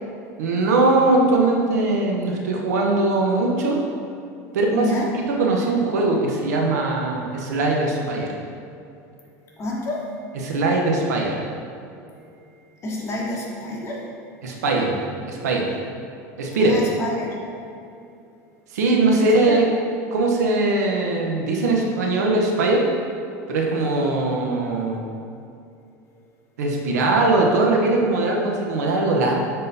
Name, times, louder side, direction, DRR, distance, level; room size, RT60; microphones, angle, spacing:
voice 1, 0.4-3.8 4.5-4.9 5.1-8.3 10.3-11.4 14.4-15.0 15.3-15.8 16.4-16.7 18.7-19.7 20.1-22.8 23.5-25.0 26.6-29.3, right 2 dB, 90° right, 0 dB, 0.9 m, -20 dB
voice 2, 4.7-5.1 9.6-10.0 12.8-14.1 16.6-17.4 19.1-19.6, left 2 dB, 30° left, -3 dB, 1.5 m, -28 dB
9.5 x 3.8 x 2.7 m, 2.6 s
supercardioid pair, 105°, 9 cm